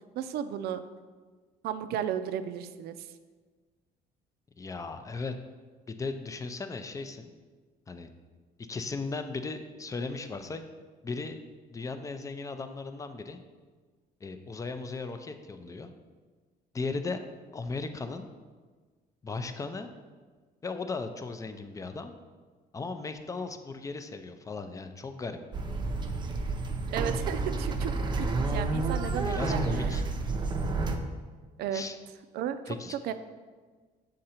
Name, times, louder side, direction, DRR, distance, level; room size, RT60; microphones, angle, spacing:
voice 1, 0.2-0.8 1.6-3.1 26.9-29.9 31.6-31.8 32.3-33.1, right 9 dB, 70° right, 11 dB, 0.4 m, -34 dB
voice 2, 4.6-5.3 5.9-7.3 7.9-8.1 8.7-10.6 11.0-11.4 11.7-13.4 14.2-15.9 16.7-17.2 17.5-18.3 19.2-19.9 20.6-22.1 22.7-25.4 29.1-30.0 31.7-32.0 32.7-33.0, left 3 dB, 20° left, 8 dB, 0.5 m, -36 dB
sound 1, 25.5-31.0, right 3 dB, 25° right, 0.6 m, -30 dB
6.6 x 3.8 x 4.3 m, 1.4 s
cardioid pair, 110°, 17 cm